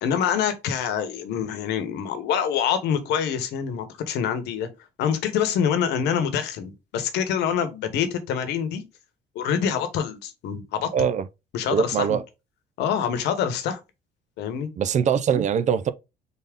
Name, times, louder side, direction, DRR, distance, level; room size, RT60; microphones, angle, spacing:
voice 1, 0.0-4.7 5.0-8.8 9.3-10.9 11.5-12.1 12.8-13.8 14.4-14.7, left 8 dB, 80° left, 1.0 m, -25 dB
voice 2, 10.9-11.3 11.7-12.2 14.8-15.9, right 8 dB, 45° right, 0.5 m, -22 dB
4.1 x 3.5 x 3.5 m
cardioid pair, 110°, 17 cm